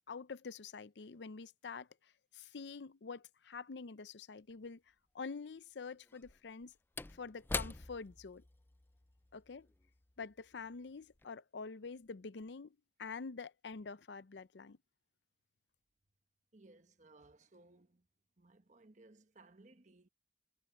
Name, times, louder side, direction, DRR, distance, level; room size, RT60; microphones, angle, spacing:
voice 1, 0.1-1.9 2.3-4.8 5.1-6.7 7.1-8.4 9.3-9.7 10.2-14.8, left 4 dB, 80° left, 0.6 m, -47 dB
Slam / Wood, 4.5-4.6 6.1-10.8 11.1-11.2, left 3 dB, 10° left, 0.4 m, -45 dB
voice 2, 16.5-18.1 18.4-20.1, right 2 dB, 45° right, 1.3 m, -62 dB
head